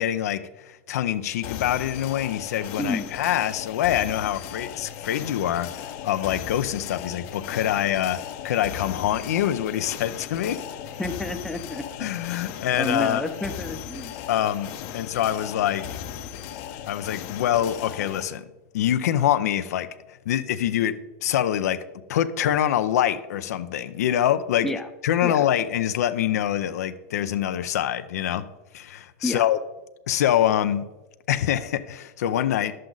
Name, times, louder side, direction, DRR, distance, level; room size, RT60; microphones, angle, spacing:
voice 1, 0.0-8.2 8.4-10.6 12.0-13.2 14.3-16.0 16.9-18.4 18.7-19.9 20.3-21.8 22.1-24.7 25.0-28.4 28.7-29.6 30.1-30.8 31.3-32.7, left 11 dB, 85° left, 11 dB, 0.6 m, -25 dB
sound 1, 1.4-18.2, left 9 dB, 55° left, 0.8 m, -37 dB
voice 2, 2.8-3.1 11.0-11.8 12.8-14.1 24.6-24.9 25.2-25.4 29.2-29.4, left 1 dB, 5° left, 6 dB, 0.6 m, -29 dB
10.5 x 7.6 x 3.9 m, 1.0 s
supercardioid pair, 130°, 8 cm